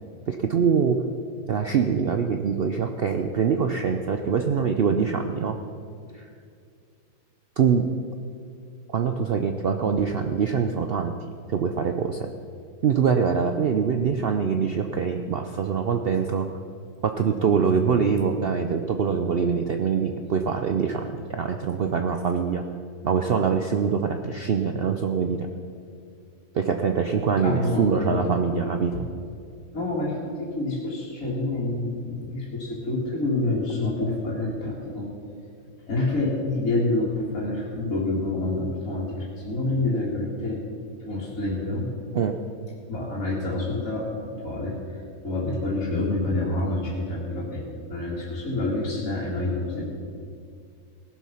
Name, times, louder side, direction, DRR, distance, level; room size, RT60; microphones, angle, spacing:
voice 1, 0.3-1.0 1.5-5.6 6.2-6.3 7.6-7.9 8.9-11.2 11.5-12.3 12.8-16.5 17.0-22.6 23.0-25.5 26.5-28.9 42.1-42.4, right 6 dB, 65° right, 5 dB, 0.5 m, -24 dB
voice 2, 27.4-28.3 28.9-29.1 29.7-35.1 35.9-40.6 41.0-41.9 42.9-44.1 44.4-44.8 45.2-47.6 47.9-49.9, left 2 dB, 60° left, -6 dB, 2.7 m, -27 dB
18.5 x 7.4 x 5.7 m, 2.4 s
omnidirectional pair, 1.7 m